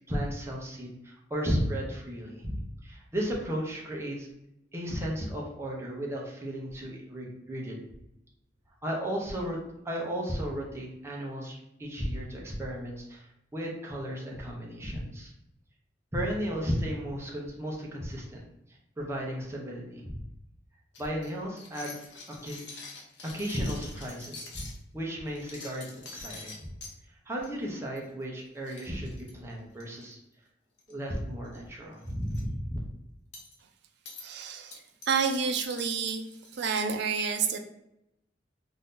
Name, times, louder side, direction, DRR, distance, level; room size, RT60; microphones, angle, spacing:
voice 1, 0.1-4.3 4.7-7.8 8.8-9.6 9.8-15.3 16.1-18.4 19.0-20.2 21.0-22.0 22.3-22.6 23.3-24.7 24.9-26.7 27.3-30.2 30.9-32.8, equal, 15° right, -2 dB, 0.7 m, -34 dB
sound 1, 20.9-24.8 25.3-26.9 27.4-27.7 28.0-28.1 28.4-28.5 28.7-30.0 30.8-31.2 31.4-31.6 32.0-32.4 33.3-33.5 34.1-34.3 34.7-36.9, left 3 dB, 75° left, 0.7 m, -45 dB
voice 2, 34.2-34.8 35.1-36.2 36.5-37.6, right 6 dB, 65° right, 5 dB, 0.4 m, -29 dB
2.7 x 2.6 x 3.6 m, 0.84 s
head